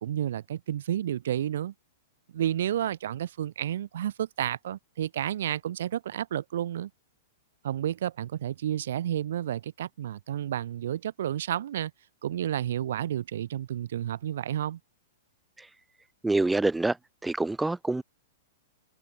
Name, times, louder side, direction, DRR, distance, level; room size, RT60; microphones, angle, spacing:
voice 1, 0.0-1.7 2.3-6.9 7.6-11.9 12.2-14.8, right 11 dB, 70° right, 3.4 m, -31 dB
voice 2, 16.2-17.0 17.2-18.0, right 2 dB, 5° right, 0.6 m, -26 dB
hypercardioid pair, 150°, 0 cm